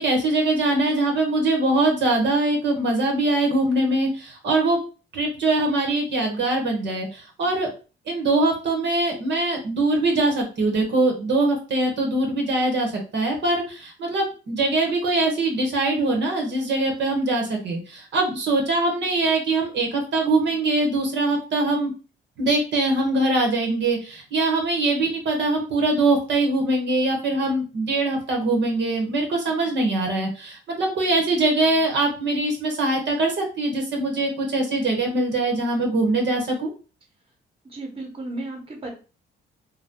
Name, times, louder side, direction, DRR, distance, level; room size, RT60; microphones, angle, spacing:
voice 1, 0.0-4.8 5.1-7.7 8.1-21.9 22.4-36.7, right 2 dB, 65° right, 1 dB, 1.0 m, -22 dB
voice 2, 37.6-38.9, right 2 dB, 30° right, 1 dB, 1.1 m, -34 dB
2.7 x 2.2 x 3.5 m, 0.34 s
cardioid pair, 90°, 20 cm